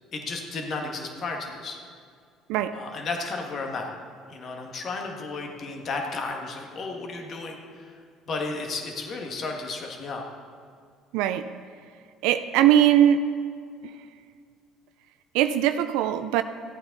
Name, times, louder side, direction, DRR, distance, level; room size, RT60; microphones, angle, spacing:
voice 1, 0.1-1.8 2.7-3.9 4.3-7.8 8.3-10.2, left 3 dB, 50° left, 2 dB, 1.8 m, -33 dB
voice 2, 11.1-11.4 12.2-13.2 15.3-16.4, right 11 dB, 75° right, 10 dB, 0.4 m, -20 dB
15.5 x 8.8 x 4.0 m, 2.1 s
hypercardioid pair, 65°, 0 cm